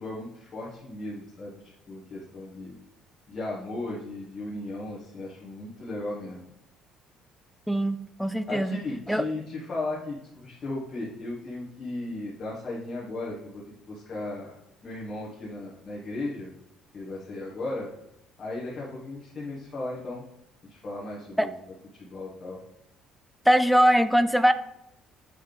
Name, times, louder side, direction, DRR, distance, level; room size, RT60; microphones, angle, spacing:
voice 1, 0.0-2.7 3.3-6.4 8.5-13.6 13.9-14.5 14.8-16.5 16.9-17.9 18.4-20.2 20.6-21.5 21.9-22.6, left 2 dB, 30° left, -6 dB, 1.4 m, -36 dB
voice 2, 7.7-8.8 9.1-9.3 21.4-21.5 23.5-24.5, equal, ahead, 11 dB, 0.3 m, -21 dB
7.9 x 3.4 x 3.9 m, 0.84 s
cardioid pair, 155°, 0 cm